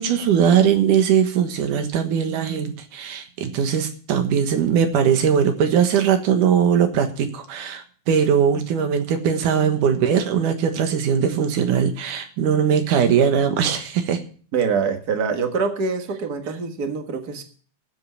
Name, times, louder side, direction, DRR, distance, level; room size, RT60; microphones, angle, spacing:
voice 1, 0.0-14.2, right 8 dB, 90° right, 7 dB, 2.9 m, -20 dB
voice 2, 14.5-17.4, right 5 dB, 40° right, 5 dB, 1.6 m, -24 dB
16.5 x 7.6 x 5.6 m, 0.44 s
omnidirectional pair, 3.6 m